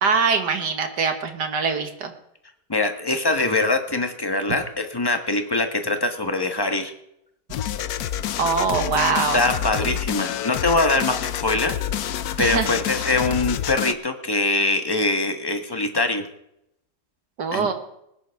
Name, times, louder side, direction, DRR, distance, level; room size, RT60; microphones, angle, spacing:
voice 1, 0.0-2.1 8.4-9.4 9.8-10.0 12.4-12.7 17.4-17.7, right 5 dB, 85° right, 6 dB, 2.2 m, -23 dB
voice 2, 2.7-6.9 9.3-11.8 12.4-16.3 17.5-17.7, left 2 dB, 15° left, 6 dB, 1.2 m, -23 dB
sound 1, 7.5-13.9, left 11 dB, 70° left, 1.1 m, -28 dB
20.0 x 10.5 x 3.6 m, 0.78 s
omnidirectional pair, 1.8 m